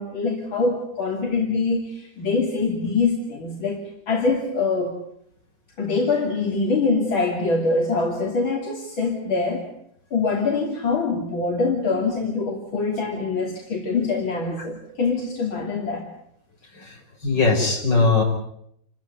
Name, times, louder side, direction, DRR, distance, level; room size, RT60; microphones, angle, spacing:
voice 1, 0.0-3.8 4.1-5.0 5.8-9.7 10.1-16.1, left 3 dB, 85° left, 1 dB, 3.5 m, -24 dB
voice 2, 17.2-18.2, left 4 dB, 65° left, 2 dB, 6.1 m, -19 dB
28.0 x 14.5 x 9.6 m, 0.71 s
omnidirectional pair, 2.1 m